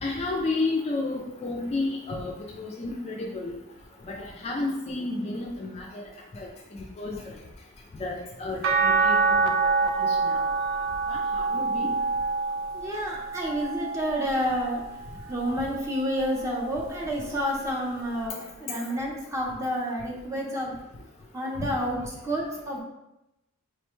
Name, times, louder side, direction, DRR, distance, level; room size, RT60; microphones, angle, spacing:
voice 1, 0.0-3.6 4.1-6.0 6.3-6.5 7.0-7.3 8.0-9.5 10.0-10.5 11.1-11.9, left 3 dB, 30° left, 0 dB, 0.3 m, -32 dB
sound 1, 8.6-14.9 15.5-16.9 18.3-18.4, right 4 dB, 60° right, 0.4 m, -27 dB
voice 2, 12.7-15.0 15.3-20.7 21.3-22.8, equal, 15° right, -2 dB, 0.6 m, -29 dB
4.8 x 2.2 x 3.0 m, 0.94 s
head